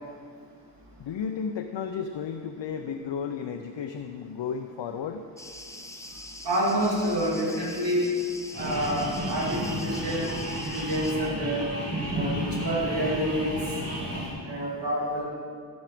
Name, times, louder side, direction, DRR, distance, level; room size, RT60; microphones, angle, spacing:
voice 1, 1.0-5.3, left 6 dB, 80° left, 6 dB, 0.6 m, -33 dB
sound 1, 5.4-11.1, left 1 dB, 5° left, 1.0 m, -43 dB
voice 2, 6.4-8.1 8.5-10.3 10.6-11.7 12.1-13.6 14.4-15.3, equal, 70° right, -5 dB, 2.8 m, -28 dB
sound 2, 8.5-14.3, equal, 35° right, 3.4 m, -32 dB
15.0 x 7.3 x 5.1 m, 2.1 s
cardioid pair, 60°, 43 cm